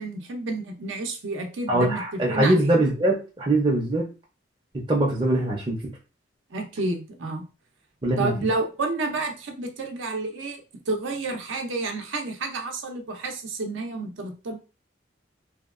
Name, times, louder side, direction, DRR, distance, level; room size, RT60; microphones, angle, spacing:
voice 1, 0.0-2.7 6.5-7.4 8.2-14.6, right 3 dB, 80° right, 4 dB, 0.6 m, -30 dB
voice 2, 1.7-4.1 4.9-5.8 8.0-8.3, right 1 dB, 25° right, -3 dB, 0.5 m, -22 dB
2.8 x 2.2 x 2.4 m, 0.32 s
head